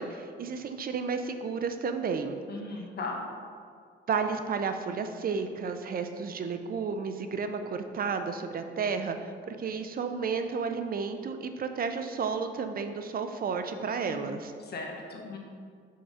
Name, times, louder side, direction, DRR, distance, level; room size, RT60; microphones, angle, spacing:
voice 1, 0.0-2.4 4.1-14.5, right 5 dB, 45° right, 7 dB, 0.6 m, -32 dB
voice 2, 2.5-3.2 14.0-14.3 14.7-15.4, left 3 dB, 55° left, 0 dB, 1.3 m, -37 dB
5.6 x 4.7 x 5.6 m, 2.1 s
cardioid pair, 90°, 20 cm